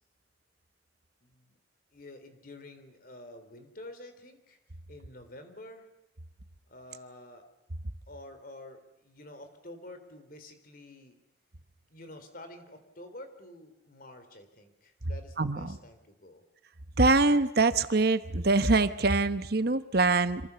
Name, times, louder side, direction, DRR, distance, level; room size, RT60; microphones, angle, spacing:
voice 1, 1.2-1.6 1.9-4.6 4.9-5.9 6.7-7.5 8.1-11.1 11.9-16.4, left 1 dB, 55° left, 8 dB, 3.6 m, -49 dB
voice 2, 15.4-15.7 17.0-20.4, right 3 dB, 60° right, 11 dB, 1.1 m, -24 dB
26.5 x 26.0 x 7.1 m, 0.91 s
head